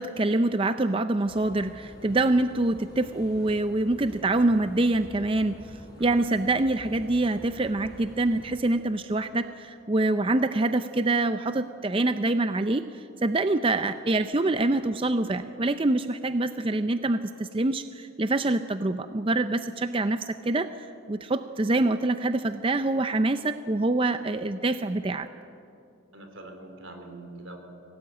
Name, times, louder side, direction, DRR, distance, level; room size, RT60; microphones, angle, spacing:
voice 1, 0.0-25.3, right 2 dB, 25° right, 10 dB, 0.5 m, -25 dB
sound 1, 1.3-8.6, equal, 20° left, 4.9 m, -48 dB
voice 2, 6.0-6.3 26.1-27.6, right 2 dB, 80° right, 5 dB, 3.7 m, -44 dB
24.0 x 17.5 x 9.1 m, 2.6 s
head